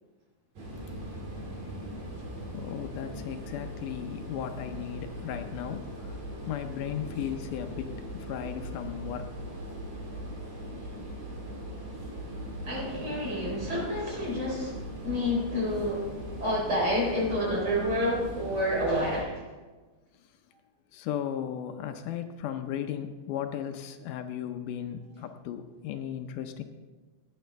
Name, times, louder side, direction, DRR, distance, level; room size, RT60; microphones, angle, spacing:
sound 1, 0.5-19.2, equal, 60° right, 3.7 m, -40 dB
voice 1, 2.5-6.1 6.5-9.3 20.9-26.6, left 9 dB, 80° left, 7 dB, 2.2 m, -36 dB
voice 2, 12.6-16.1 16.4-19.4, left 1 dB, 40° right, -4 dB, 4.7 m, -29 dB
17.0 x 9.8 x 3.4 m, 1.3 s
omnidirectional pair, 3.7 m